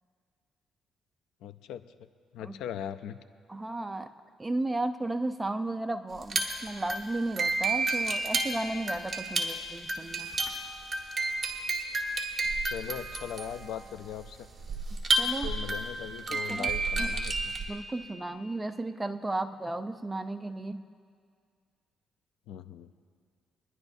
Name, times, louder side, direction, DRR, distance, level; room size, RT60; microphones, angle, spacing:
voice 1, 1.4-3.2 12.7-14.5 15.4-17.5 22.5-22.9, left 9 dB, 90° left, 12 dB, 0.5 m, -40 dB
voice 2, 3.5-4.1 4.4-10.3 15.2-15.5 16.3-16.7 17.0-17.1 17.7-20.8, right 2 dB, 15° right, 8 dB, 0.6 m, -34 dB
sound 1, 6.2-17.7, right 2 dB, 35° right, 1.5 m, -31 dB
26.0 x 10.5 x 2.7 m, 2.1 s
cardioid pair, 90°, 0 cm